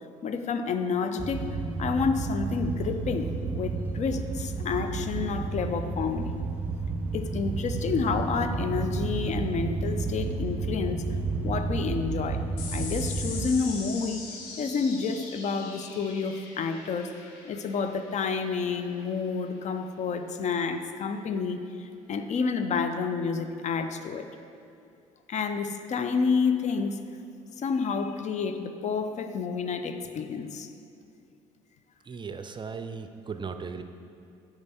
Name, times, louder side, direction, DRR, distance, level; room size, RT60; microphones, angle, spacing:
voice 1, 0.2-1.5 1.8-6.3 7.1-11.0 11.4-12.4 12.7-17.1 17.4-24.3 25.3-27.0 27.6-30.7, left 5 dB, 45° left, 8 dB, 0.6 m, -29 dB
sound 1, 1.2-13.5, right 3 dB, 10° right, 0.9 m, -31 dB
sound 2, 12.6-19.4, left 4 dB, 70° left, 1.0 m, -42 dB
voice 2, 32.0-33.8, right 5 dB, 30° right, 8 dB, 0.5 m, -37 dB
9.4 x 5.0 x 4.2 m, 2.4 s
hypercardioid pair, 55°, 17 cm